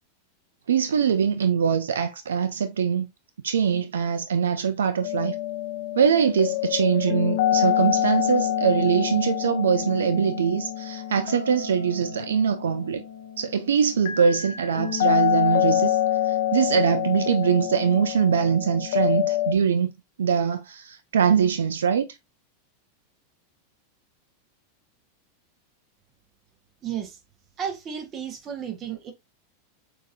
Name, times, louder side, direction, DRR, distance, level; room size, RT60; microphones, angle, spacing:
voice 1, 0.7-3.1 3.4-5.4 5.9-13.0 13.4-16.0 16.3-19.9 20.2-22.1, right 7 dB, 85° right, 0.4 m, -23 dB
sound 1, 5.0-19.5, left 11 dB, 70° left, 0.7 m, -26 dB
voice 2, 26.8-27.2 27.6-29.1, right 8 dB, 35° right, 1.3 m, -33 dB
6.1 x 2.8 x 2.6 m
hypercardioid pair, 100°, 0 cm